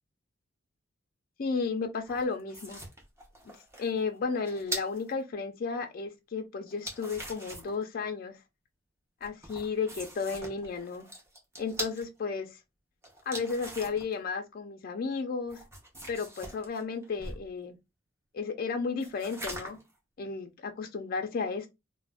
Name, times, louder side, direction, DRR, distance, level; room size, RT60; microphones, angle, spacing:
voice 1, 1.4-2.8 3.8-8.4 9.2-11.1 11.6-12.5 13.3-15.6 16.1-17.8 18.3-19.8 20.2-21.7, left 5 dB, 45° left, 0.4 m, -33 dB
sound 1, 2.0-5.1 6.7-7.8 9.2-12.0 13.0-14.1 15.5-17.5 19.0-19.9, right 1 dB, 15° right, 0.7 m, -42 dB
2.4 x 2.1 x 3.3 m
head